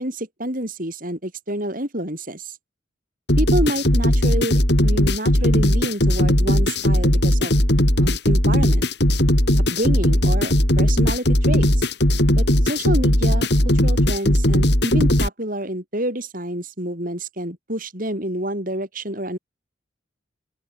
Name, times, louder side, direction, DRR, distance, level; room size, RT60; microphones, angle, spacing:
voice 1, 0.0-2.5 3.4-7.5 8.0-8.9 9.7-11.9 12.3-13.5 13.8-19.4, right 1 dB, 45° right, 6.8 m, -28 dB
sound 1, 3.3-15.3, left 1 dB, 55° left, 4.7 m, -18 dB
open air
head